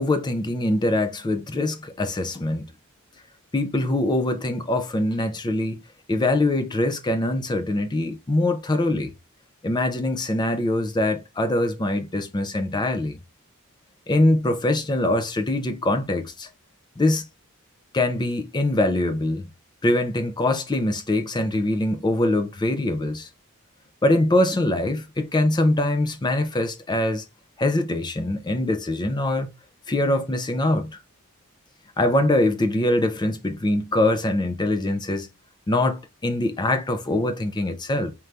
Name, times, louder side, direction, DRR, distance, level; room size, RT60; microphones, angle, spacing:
voice 1, 0.0-2.7 3.5-5.8 6.1-9.1 9.6-13.2 14.1-16.5 17.0-17.3 17.9-19.5 19.8-23.3 24.0-27.2 27.6-29.5 29.9-31.0 32.0-35.3 35.7-38.1, left 1 dB, 20° left, 0.4 m, -23 dB
4.5 x 2.6 x 3.2 m
head